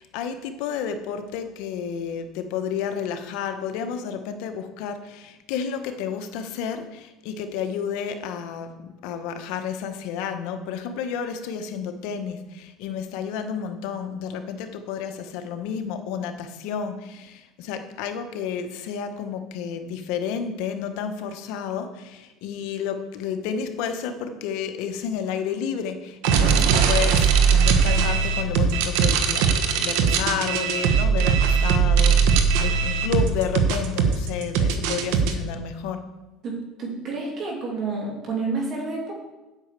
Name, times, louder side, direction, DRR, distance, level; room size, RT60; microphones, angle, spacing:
voice 1, 0.0-36.0, left 7 dB, 75° left, 7 dB, 1.1 m, -31 dB
sound 1, 26.2-35.3, right 6 dB, 80° right, 1.2 m, -20 dB
voice 2, 36.4-39.1, right 3 dB, 45° right, -2 dB, 2.6 m, -29 dB
8.7 x 6.1 x 8.2 m, 1.1 s
supercardioid pair, 120°, 0 cm